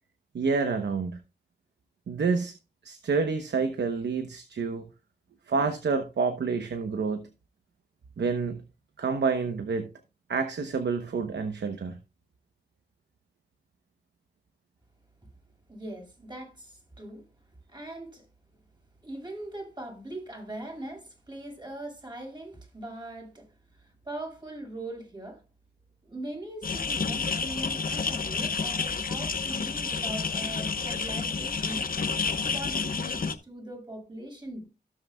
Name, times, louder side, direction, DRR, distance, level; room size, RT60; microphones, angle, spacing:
voice 1, 0.3-1.2 2.1-2.5 2.8-4.8 5.5-7.2 8.2-8.6 9.0-9.9 10.3-12.0, right 4 dB, 85° right, 0.9 m, -28 dB
voice 2, 15.7-17.2 17.7-18.2 19.0-23.5 23.8-25.4 26.0-31.8 32.5-34.7, right 1 dB, 25° right, 5.8 m, -41 dB
sound 1, 26.6-33.4, left 5 dB, 55° left, 0.9 m, -30 dB
17.0 x 6.4 x 2.3 m
cardioid pair, 45°, 18 cm